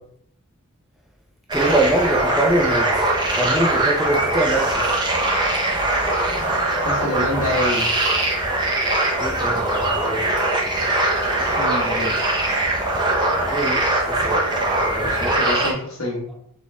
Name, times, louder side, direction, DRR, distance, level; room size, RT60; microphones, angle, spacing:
voice 1, 1.5-5.0 9.2-10.3 13.5-14.4 14.8-15.4, right 1 dB, ahead, 0 dB, 0.5 m, -24 dB
sound 1, 1.5-15.7, right 2 dB, 20° right, 0.8 m, -21 dB
voice 2, 6.8-7.9 11.4-12.1 14.2-14.3 15.0-16.3, left 1 dB, 70° left, -2 dB, 1.5 m, -27 dB
4.2 x 3.4 x 3.5 m, 0.70 s
head